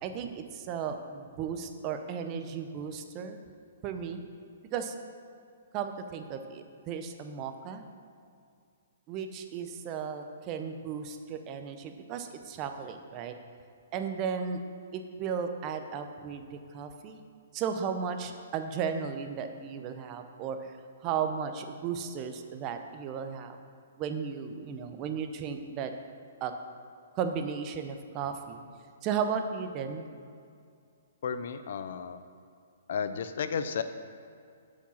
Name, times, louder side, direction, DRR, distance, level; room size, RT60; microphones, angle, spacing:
voice 1, 0.0-3.4 3.8-4.2 4.7-5.0 5.7-7.8 9.1-13.3 13.9-14.6 14.9-17.2 17.5-20.7 21.0-23.6 24.0-25.9 26.4-26.5 27.2-28.6 29.0-30.1, right 7 dB, 30° right, 7 dB, 0.6 m, -35 dB
voice 2, 31.2-32.2 32.9-33.8, left 6 dB, 60° left, 10 dB, 0.5 m, -33 dB
7.0 x 5.1 x 5.6 m, 2.3 s
hypercardioid pair, 145°, 0 cm